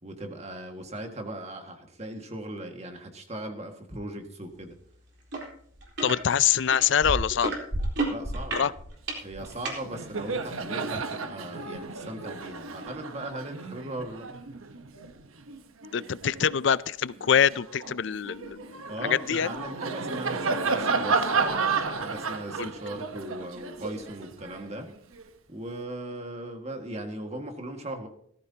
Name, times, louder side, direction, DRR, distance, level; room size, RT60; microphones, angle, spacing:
voice 1, 0.0-4.8 8.0-8.7 9.2-14.3 18.9-24.9 25.5-28.1, right 1 dB, 30° right, 4 dB, 1.8 m, -38 dB
sound 1, 5.3-5.5 5.8-6.2 6.7-9.8 10.5-10.6, right 2 dB, 55° right, 3.8 m, -30 dB
voice 2, 6.0-7.6 8.5-8.7 15.9-19.5 22.6-22.7, left 8 dB, 60° left, 18 dB, 0.4 m, -25 dB
Laughter, 9.4-9.6 9.8-16.6 17.1-25.3, right 4 dB, 80° right, 1.0 m, -32 dB
18.0 x 14.5 x 2.8 m, 0.65 s
head